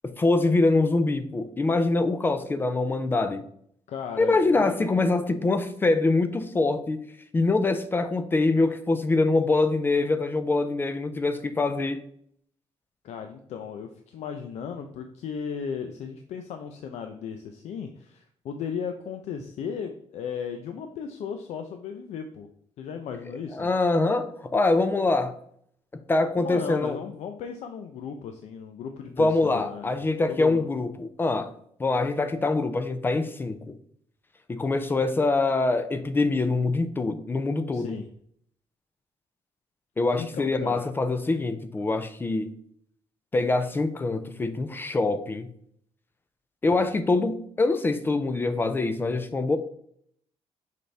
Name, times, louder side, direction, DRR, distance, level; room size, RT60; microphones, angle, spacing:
voice 1, 0.0-3.4 4.2-7.0 7.3-12.0 23.5-25.4 25.9-27.0 29.2-31.5 31.8-33.8 34.5-38.0 40.0-42.6 43.3-45.5 46.6-49.6, left 3 dB, 20° left, 0.4 m, -24 dB
voice 2, 3.9-4.7 13.0-22.5 22.8-23.7 26.4-29.9 30.3-30.6 37.7-38.1 40.1-40.9, left 7 dB, 80° left, 0.6 m, -36 dB
6.5 x 5.0 x 3.3 m
cardioid pair, 170°, 11 cm